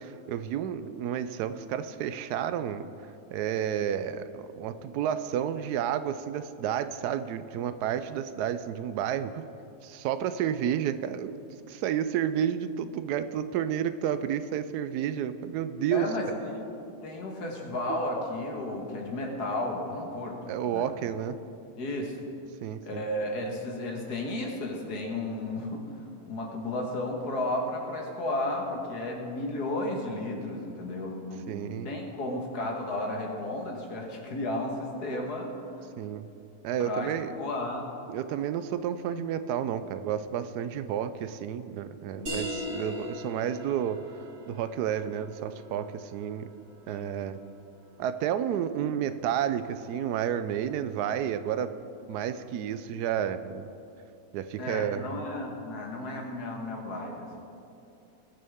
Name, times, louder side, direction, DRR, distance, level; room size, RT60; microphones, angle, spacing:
voice 1, 0.0-2.9 3.3-9.5 9.8-11.4 11.7-16.1 17.9-18.0 20.5-21.4 22.6-23.0 31.5-31.9 36.0-36.3 36.6-37.3 38.1-44.0 44.5-46.5 46.9-47.4 48.0-51.7 52.1-53.7 54.3-55.2, right 9 dB, 90° right, 12 dB, 1.1 m, -31 dB
voice 2, 15.9-16.7 17.0-20.4 20.7-20.9 21.8-22.2 22.8-25.9 26.3-35.6 36.8-37.8 42.2-42.6 46.9-47.1 54.6-57.4, left 1 dB, 90° left, 1 dB, 2.0 m, -33 dB
sound 1, 42.3-47.6, left 1 dB, 70° right, 3.5 m, -40 dB
20.0 x 6.8 x 3.6 m, 2.7 s
omnidirectional pair, 1.7 m